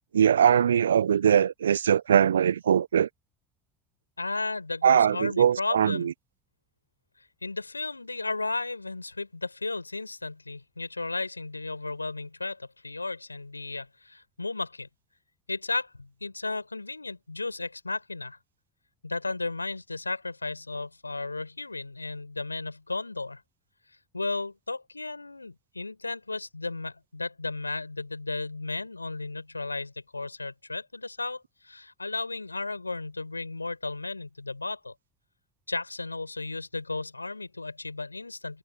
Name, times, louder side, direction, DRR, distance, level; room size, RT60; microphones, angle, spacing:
voice 1, 0.1-3.1 4.8-6.1, right 8 dB, 75° right, 1.0 m, -21 dB
voice 2, 4.2-6.1 7.4-14.9 15.5-18.4 19.0-23.4 24.1-34.9 35.7-38.6, left 3 dB, 90° left, 6.2 m, -34 dB
figure-of-eight pair, 70°, 0 cm